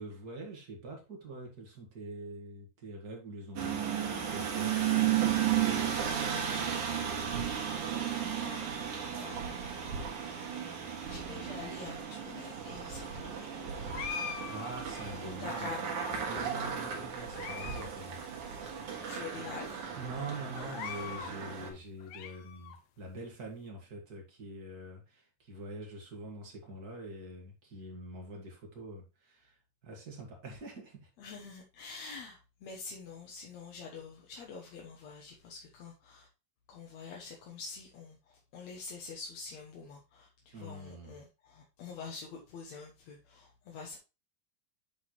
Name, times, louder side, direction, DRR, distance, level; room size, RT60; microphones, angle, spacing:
voice 1, 0.0-5.9 14.4-15.7 16.3-18.2 20.0-29.6 29.8-31.1 40.5-41.2, right 1 dB, 35° right, 1.9 m, -45 dB
sound 1, 3.6-21.7, right 9 dB, 70° right, 3.0 m, -34 dB
sound 2, 6.9-19.8, right 4 dB, 85° right, 3.7 m, -55 dB
voice 2, 7.9-8.7 9.1-9.8 10.6-13.7 15.2-16.1 19.0-19.8 31.2-36.3 36.7-44.0, left 5 dB, 65° left, 2.1 m, -46 dB
sound 3, 13.9-15.3 16.0-16.7 17.2-17.9 18.2-18.3 19.0-19.1 19.4-19.6 20.5-21.4 21.8-22.8, left 8 dB, 85° left, 1.5 m, -42 dB
8.8 x 4.8 x 3.1 m
omnidirectional pair, 3.8 m